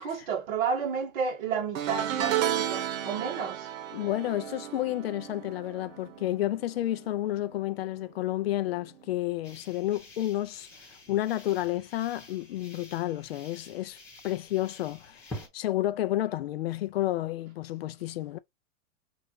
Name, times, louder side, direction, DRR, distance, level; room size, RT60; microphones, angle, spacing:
voice 1, 0.0-3.7, right 6 dB, 45° right, 1.5 m, -31 dB
sound 1, 1.8-7.2 7.4-7.8 9.0-9.1, right 11 dB, 80° right, 1.0 m, -33 dB
voice 2, 3.9-10.7 11.1-14.0 14.2-18.4, left 14 dB, 50° left, 0.5 m, -31 dB
sound 2, 9.4-15.5, left 1 dB, 5° left, 1.3 m, -47 dB
4.4 x 2.6 x 4.5 m
supercardioid pair, 175°, 39 cm